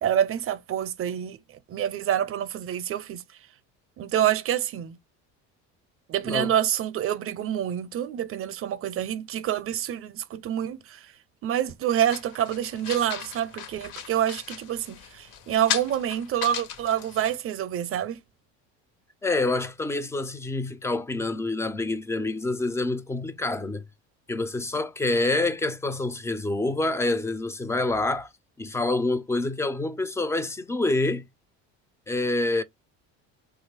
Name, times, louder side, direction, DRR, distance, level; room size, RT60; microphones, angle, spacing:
voice 1, 0.0-1.4 1.7-3.2 4.0-4.9 6.1-11.0 11.4-18.2, right 10 dB, 40° right, 0.6 m, -27 dB
sound 1, 12.1-17.4, left 9 dB, 65° left, 0.8 m, -36 dB
voice 2, 19.2-23.8 24.3-28.3 28.6-31.3 32.1-32.6, left 2 dB, 10° left, 0.3 m, -27 dB
2.9 x 2.4 x 3.2 m
supercardioid pair, 100°, 35 cm